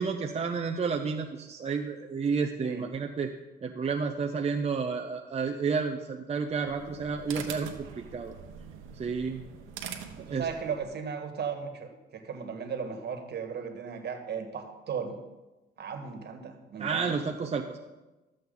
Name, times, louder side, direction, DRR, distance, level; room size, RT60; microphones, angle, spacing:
voice 1, 0.0-3.3 3.6-7.7 8.1-8.3 8.9-9.4 10.3-10.5 16.8-17.8, right 5 dB, 30° right, 4 dB, 0.7 m, -31 dB
sound 1, 6.5-10.9, right 7 dB, 90° right, 1.1 m, -44 dB
voice 2, 10.2-15.2 15.8-17.5, right 6 dB, 55° right, 5 dB, 1.7 m, -36 dB
13.0 x 7.6 x 3.9 m, 1.1 s
cardioid pair, 90°, 20 cm